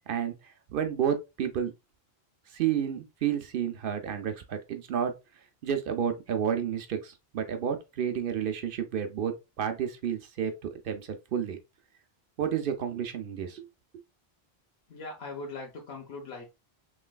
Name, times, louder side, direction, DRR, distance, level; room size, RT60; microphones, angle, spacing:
voice 1, 0.7-1.7 2.5-5.1 5.6-11.6 12.4-13.7, right 8 dB, 65° right, 0.7 m, -31 dB
voice 2, 14.9-16.5, left 3 dB, 75° left, 1.0 m, -40 dB
3.1 x 3.0 x 2.2 m
omnidirectional pair, 1.1 m